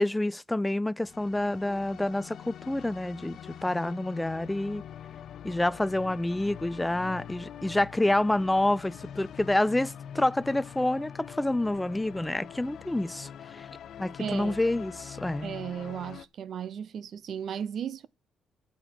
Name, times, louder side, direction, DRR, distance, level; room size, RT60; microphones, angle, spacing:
voice 1, 0.0-4.8 5.4-13.7 14.0-15.5, left 1 dB, 10° left, 0.4 m, -28 dB
sound 1, 1.0-16.3, left 9 dB, 65° left, 0.6 m, -44 dB
voice 2, 14.2-14.6 15.4-18.1, right 8 dB, 60° right, 0.6 m, -35 dB
8.7 x 5.1 x 6.5 m
cardioid pair, 100°, 0 cm